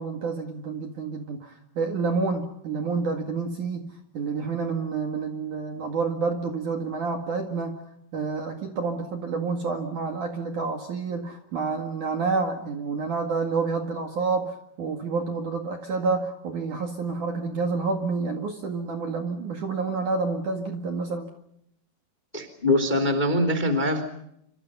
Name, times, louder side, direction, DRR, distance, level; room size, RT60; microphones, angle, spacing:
voice 1, 0.0-7.8 8.1-21.3, right 4 dB, 50° right, 4 dB, 2.8 m, -29 dB
voice 2, 22.3-24.1, left 1 dB, 10° left, 9 dB, 2.2 m, -23 dB
28.5 x 26.0 x 5.6 m, 0.73 s
omnidirectional pair, 5.5 m